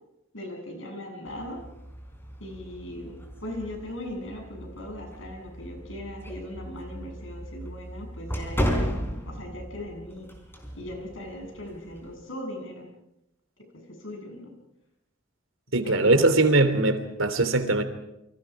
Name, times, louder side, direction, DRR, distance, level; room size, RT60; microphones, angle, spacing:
voice 1, 0.3-1.6 2.4-8.7 9.3-10.3 10.8-12.9 13.7-14.5 15.8-16.5, left 1 dB, 70° left, 3 dB, 7.5 m, -39 dB
sound 1, 1.3-12.1, equal, 10° left, 4.7 m, -35 dB
voice 2, 15.7-17.8, right 2 dB, 80° right, 9 dB, 3.2 m, -21 dB
29.0 x 25.0 x 4.9 m, 0.86 s
head